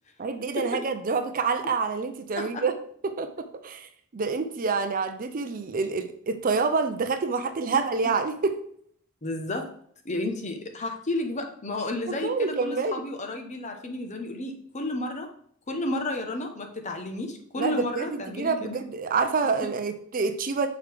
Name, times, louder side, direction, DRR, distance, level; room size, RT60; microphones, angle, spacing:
voice 1, 0.2-2.7 3.0-8.6 12.1-13.0 17.6-20.7, right 4 dB, 40° right, 8 dB, 0.5 m, -27 dB
voice 2, 9.2-9.7 10.0-15.3 15.7-18.8, left 2 dB, 35° left, 4 dB, 0.8 m, -32 dB
6.6 x 4.8 x 3.4 m, 0.62 s
head